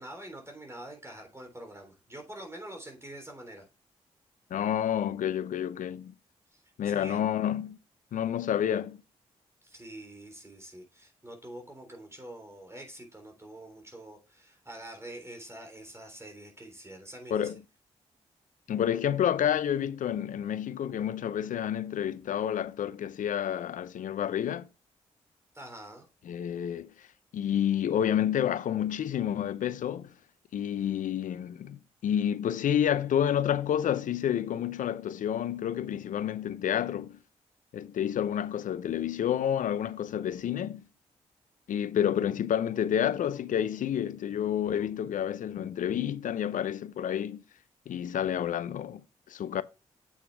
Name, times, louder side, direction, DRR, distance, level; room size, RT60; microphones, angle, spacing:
voice 1, 0.0-3.6 6.5-7.2 9.6-17.5 25.5-26.1, right 1 dB, 20° right, 3.6 m, -46 dB
voice 2, 4.5-6.1 6.8-7.8 8.1-9.0 17.3-17.6 18.7-24.7 26.2-26.9 27.3-30.1 30.5-37.2 37.7-40.8 41.7-47.4 47.9-49.6, left 9 dB, 70° left, 0.6 m, -29 dB
7.9 x 6.9 x 3.4 m
hypercardioid pair, 40°, 14 cm